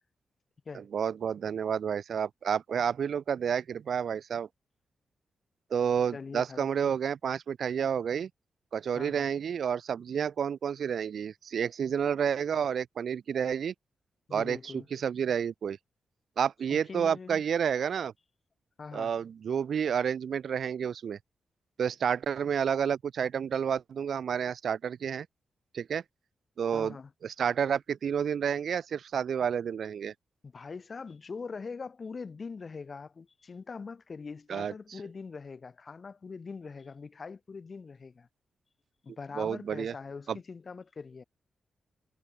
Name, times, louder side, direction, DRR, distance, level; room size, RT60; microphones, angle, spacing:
voice 1, 0.9-4.5 5.7-8.3 8.7-13.7 14.3-15.8 16.4-18.1 18.9-21.2 21.8-25.3 25.7-26.0 26.6-27.0 27.2-30.1 34.5-34.7 39.4-39.9 40.3-40.4, right 7 dB, 70° right, 1.0 m, -30 dB
voice 2, 6.1-7.0 8.9-9.3 14.3-14.9 16.7-17.4 18.8-19.1 26.7-27.1 30.4-38.3 39.0-41.2, left 4 dB, 45° left, 5.5 m, -42 dB
cardioid pair, 75°, 0 cm